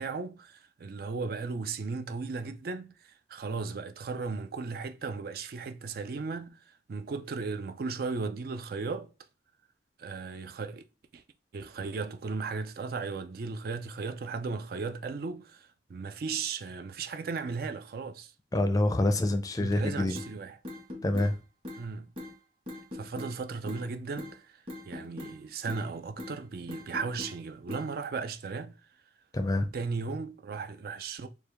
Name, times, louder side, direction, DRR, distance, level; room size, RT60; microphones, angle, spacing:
voice 1, 0.0-9.1 10.0-10.8 11.1-11.2 11.5-18.3 19.6-20.6 21.8-22.1 22.9-24.4 24.9-28.8 29.7-31.3, right 4 dB, 55° right, 0.4 m, -36 dB
voice 2, 18.5-20.2 21.0-21.4 29.3-29.7, left 1 dB, 20° left, 0.4 m, -26 dB
sound 1, 20.1-20.3 20.6-21.3 21.6-21.8 22.2-22.3 22.7-23.3 23.7-23.9 24.2-24.3 24.7-25.4 25.7-25.9 26.2-26.4 26.7-27.4 27.7-27.9, left 2 dB, 30° right, 1.3 m, -41 dB
4.7 x 2.3 x 3.3 m
head